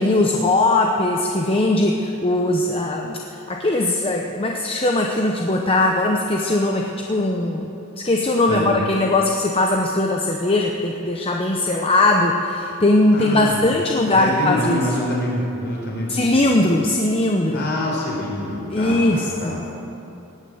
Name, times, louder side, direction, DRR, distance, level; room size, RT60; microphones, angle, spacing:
voice 1, 0.0-3.2 3.5-14.9 16.1-17.7 18.7-19.7, left 2 dB, 25° left, 1 dB, 0.7 m, -20 dB
voice 2, 13.1-13.7 14.1-16.5 17.5-19.6, left 1 dB, 50° left, -4 dB, 4.6 m, -26 dB
17.5 x 9.4 x 7.9 m, 2.8 s
head